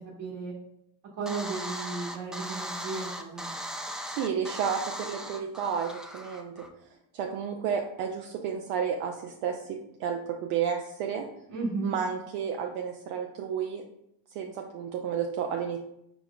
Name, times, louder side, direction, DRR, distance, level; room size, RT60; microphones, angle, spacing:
voice 1, 0.2-0.5 1.2-3.6 11.5-11.9, right 4 dB, 60° right, -5 dB, 1.3 m, -34 dB
sound 1, 1.3-6.7, equal, ahead, 0.4 m, -38 dB
voice 2, 4.1-6.5 7.1-11.2 11.8-13.8 14.3-15.8, right 7 dB, 80° right, 2 dB, 0.5 m, -31 dB
4.7 x 4.0 x 2.2 m, 0.78 s
hypercardioid pair, 55°, 49 cm